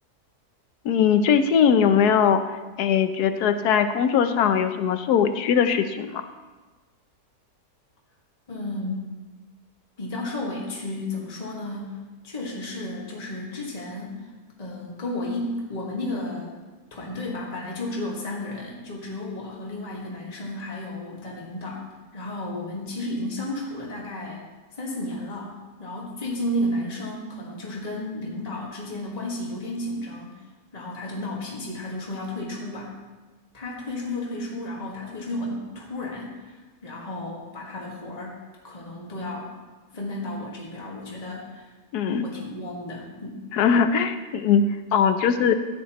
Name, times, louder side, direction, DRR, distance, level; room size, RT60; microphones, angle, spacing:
voice 1, 0.8-2.4 2.8-6.2 41.9-42.3 43.5-45.5, left 7 dB, 80° left, 9 dB, 1.2 m, -20 dB
voice 2, 8.5-9.1 10.0-14.2 14.6-16.6 16.9-21.9 22.1-24.4 24.8-30.4 30.7-32.9 33.5-38.4 38.6-39.5 39.9-41.7 42.2-43.4, left 1 dB, 25° left, -3 dB, 1.8 m, -33 dB
14.5 x 9.2 x 3.0 m, 1.2 s
omnidirectional pair, 1.7 m